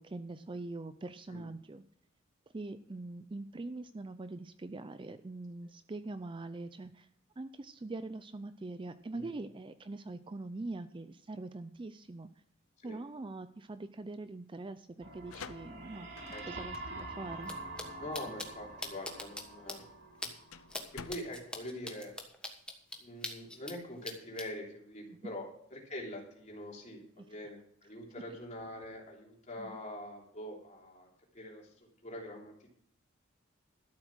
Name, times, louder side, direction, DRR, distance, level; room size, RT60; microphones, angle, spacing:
voice 1, 0.0-1.8 2.5-7.1 7.4-12.3 12.8-17.5 25.2-25.3 27.2-27.5 28.1-28.2 29.6-29.8, right 2 dB, 25° right, 11 dB, 0.4 m, -43 dB
sound 1, 15.0-22.6, left 6 dB, 85° left, 0.7 m, -53 dB
sound 2, 15.0-20.9, right 2 dB, 55° right, 2.6 m, -46 dB
sound 3, 17.4-17.5 17.8-17.9 18.1-18.5 18.8-19.4 19.7-19.8 20.2-20.3 20.7-20.8 21.1-23.7 24.0-24.4, left 2 dB, 5° left, 1.3 m, -40 dB
voice 2, 18.0-19.9 20.9-22.1 23.0-31.1 31.3-31.7 32.0-32.5, left 1 dB, 35° left, -1 dB, 3.2 m, -44 dB
13.0 x 7.6 x 6.2 m, 0.66 s
head